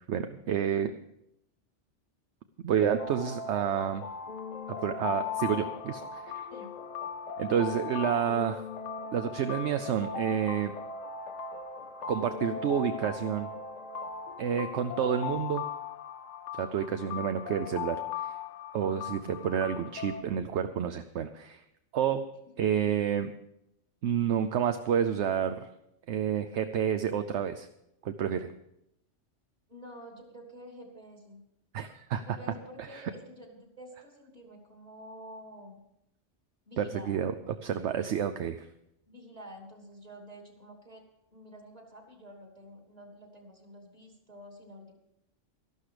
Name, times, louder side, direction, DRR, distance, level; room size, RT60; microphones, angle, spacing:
voice 1, 0.1-0.9 2.6-4.1 4.7-6.5 7.4-8.6 9.1-10.7 12.1-13.5 14.4-15.6 16.5-18.4 18.7-21.6 21.9-22.2 22.6-23.3 24.0-25.7 26.1-27.7 28.0-28.5 31.7-32.2 32.9-33.0 36.8-37.3 37.6-38.7, right 8 dB, 70° right, 9 dB, 0.9 m, -29 dB
sound 1, 2.8-15.3, left 1 dB, 45° left, 0.6 m, -42 dB
sound 2, 3.0-20.2, left 9 dB, 85° left, 1.1 m, -40 dB
voice 2, 29.7-31.4 32.3-35.8 36.6-37.2 38.0-38.2 39.1-41.0 41.3-44.9, equal, 35° right, 1 dB, 3.1 m, -49 dB
13.0 x 12.0 x 5.0 m, 0.81 s
omnidirectional pair, 1.3 m